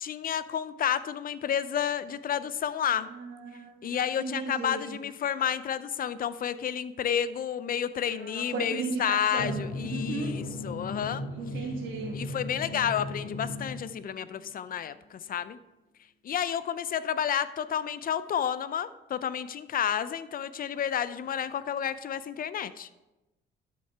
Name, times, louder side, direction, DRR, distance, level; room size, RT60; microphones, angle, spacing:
voice 1, 0.0-3.1 3.8-11.3 12.1-15.6 16.2-22.9, left 9 dB, 45° left, 14 dB, 0.5 m, -30 dB
voice 2, 3.1-5.0 8.0-9.6 9.9-10.4 11.3-12.1, right 4 dB, 75° right, -1 dB, 1.3 m, -36 dB
Drum, 9.4-14.5, left 1 dB, 85° left, 1.6 m, -37 dB
12.5 x 5.5 x 3.4 m, 1.0 s
cardioid pair, 90°, 20 cm